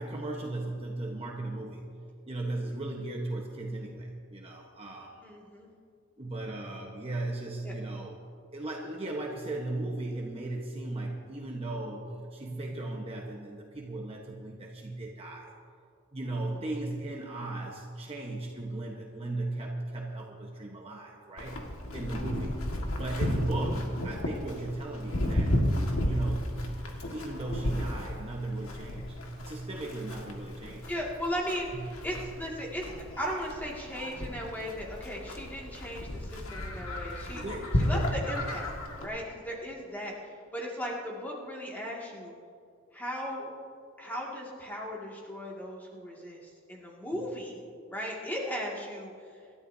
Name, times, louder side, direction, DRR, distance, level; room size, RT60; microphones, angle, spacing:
voice 1, 0.0-1.9 2.3-5.2 6.2-8.1 8.5-15.5 16.1-21.7 21.9-22.7 22.9-26.6 27.1-30.9 31.7-31.9 32.1-32.3 37.3-38.2 47.1-47.2, right 2 dB, 30° right, -1 dB, 1.1 m, -36 dB
voice 2, 5.2-5.7 7.6-7.8 30.9-37.4 37.8-38.7 39.0-40.1 40.5-42.3 42.9-43.5 44.0-47.6 47.9-49.1, equal, 10° left, -3 dB, 2.1 m, -37 dB
Livestock farm animals working animals, 21.4-39.1, left 1 dB, 85° left, 1.8 m, -33 dB
27.0 x 12.5 x 2.7 m, 2.4 s
head